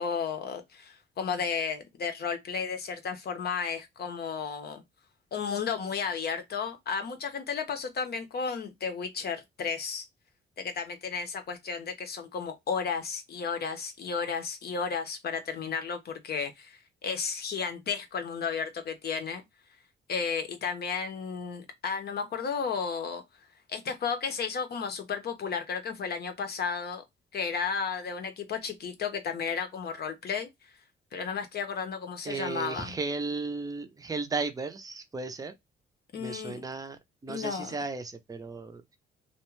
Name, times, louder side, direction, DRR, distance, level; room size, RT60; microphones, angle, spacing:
voice 1, 0.0-4.8 5.3-10.1 10.6-19.4 20.1-23.2 23.7-27.0 27.3-30.5 31.1-33.0 36.1-36.6 37.3-37.8, left 6 dB, 55° left, 0.7 m, -33 dB
voice 2, 32.2-35.5 36.2-38.8, right 4 dB, 20° right, 0.5 m, -35 dB
2.3 x 2.1 x 3.0 m
cardioid pair, 90°, 20 cm